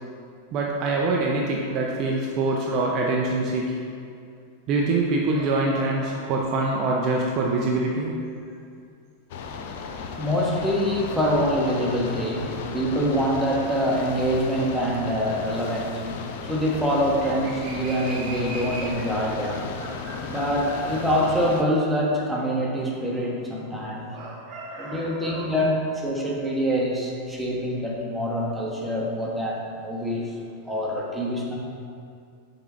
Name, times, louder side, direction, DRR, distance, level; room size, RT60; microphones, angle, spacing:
voice 1, 0.5-3.9 4.7-8.2 17.6-18.9 19.8-20.4 24.1-25.5, right 2 dB, 35° right, -2 dB, 0.6 m, -26 dB
sound 1, 9.3-21.6, left 5 dB, 50° left, 0.5 m, -35 dB
voice 2, 9.5-24.2 24.8-30.4 30.6-31.6, equal, 5° right, -4 dB, 1.2 m, -25 dB
6.8 x 3.8 x 4.7 m, 2.4 s
figure-of-eight pair, 90°, 0 cm